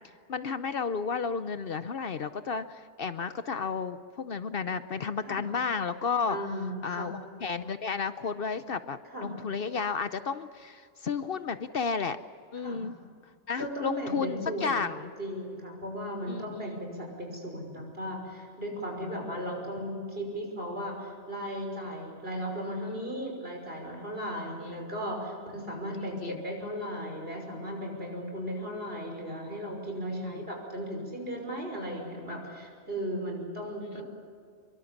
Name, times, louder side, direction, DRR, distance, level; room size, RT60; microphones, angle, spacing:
voice 1, 0.3-6.4 6.8-12.2 12.5-13.0 13.5-15.1 16.3-16.4 24.6-24.7 26.2-26.4 30.1-30.4, left 5 dB, 55° left, 11 dB, 0.9 m, -32 dB
voice 2, 6.3-7.1 9.1-9.3 12.6-12.8 13.6-14.9 15.2-34.0, equal, 55° right, 1 dB, 6.2 m, -36 dB
25.0 x 23.0 x 7.2 m, 2.2 s
omnidirectional pair, 1.2 m